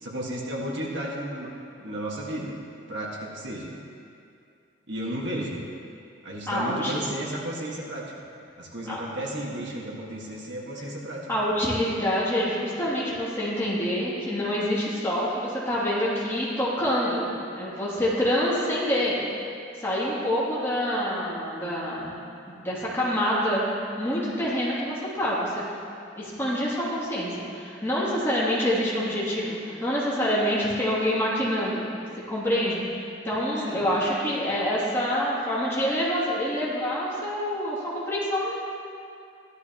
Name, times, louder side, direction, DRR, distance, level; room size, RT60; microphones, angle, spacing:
voice 1, 0.0-2.6 2.9-3.8 4.9-5.6 6.2-8.1 8.6-11.3 33.6-33.9, right 1 dB, 70° right, -2 dB, 1.7 m, -33 dB
voice 2, 6.5-7.0 8.9-9.0 11.3-17.2 17.6-19.1 19.8-22.2 22.5-23.6 24.0-25.6 26.2-31.9 32.3-33.0 33.2-38.6, equal, 15° left, -8 dB, 2.6 m, -26 dB
15.0 x 12.0 x 3.0 m, 2.4 s
head